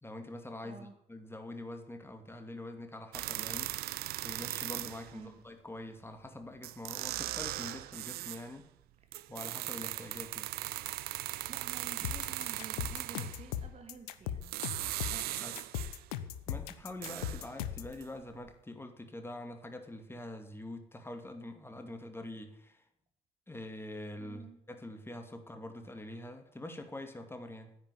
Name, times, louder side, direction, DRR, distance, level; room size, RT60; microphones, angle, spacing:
voice 1, 0.0-3.7 4.2-8.7 9.3-10.5 15.4-15.6 16.5-22.8 23.5-27.8, left 1 dB, 10° left, 6 dB, 2.4 m, -45 dB
voice 2, 0.6-1.0 5.1-5.4 9.1-9.3 11.2-14.6 15.1-15.5 24.2-24.6, right 4 dB, 35° right, 7 dB, 2.6 m, -51 dB
sound 1, 3.1-5.2 6.2-6.3 6.6-8.5 9.1-13.5 14.3-16.1 16.5-18.1 18.5-18.6, right 17 dB, 50° right, 0.6 m, -39 dB
sound 2, 12.0-17.9, left 10 dB, 70° left, 1.0 m, -38 dB
10.0 x 9.6 x 10.0 m, 0.77 s
figure-of-eight pair, 50°, 20 cm